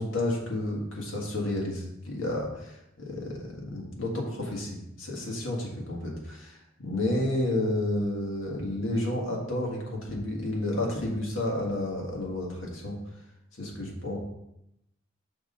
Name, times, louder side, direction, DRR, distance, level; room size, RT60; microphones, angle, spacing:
voice 1, 0.0-13.0 13.6-14.2, left 1 dB, 75° left, -1 dB, 1.7 m, -31 dB
6.1 x 3.9 x 5.4 m, 0.84 s
head